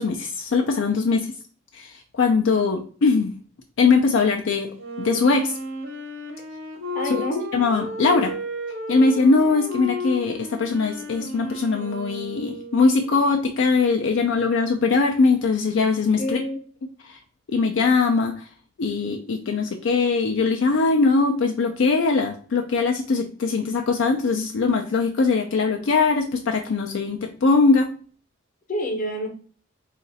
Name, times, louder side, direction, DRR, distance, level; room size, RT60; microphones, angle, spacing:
voice 1, 0.0-1.3 1.7-3.3 3.8-4.7 5.0-5.5 7.0-7.2 7.5-8.3 8.9-16.4 17.0-17.2 17.5-18.5 18.8-27.9, left 4 dB, 70° left, 3 dB, 0.4 m, -21 dB
Wind instrument woodwind instrument, 4.7-13.3, left 1 dB, 75° right, 0.9 m, -34 dB
voice 2, 6.9-7.4 16.2-16.6 28.7-29.3, left 1 dB, 40° left, 3 dB, 0.8 m, -27 dB
4.0 x 2.5 x 3.9 m, 0.43 s
head